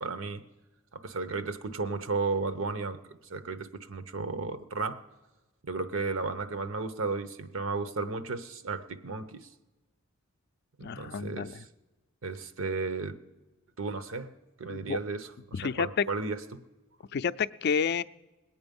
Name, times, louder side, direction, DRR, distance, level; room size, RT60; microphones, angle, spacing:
voice 1, 0.0-0.4 0.9-3.0 3.3-5.0 5.6-9.5 10.8-11.7 12.2-13.2 13.8-14.3 14.6-16.6, right 4 dB, 75° right, 12 dB, 0.9 m, -34 dB
voice 2, 10.8-11.6 14.7-15.0 15.5-16.1 17.1-18.0, left 6 dB, 55° left, 15 dB, 0.4 m, -30 dB
20.5 x 8.8 x 5.3 m, 1.1 s
head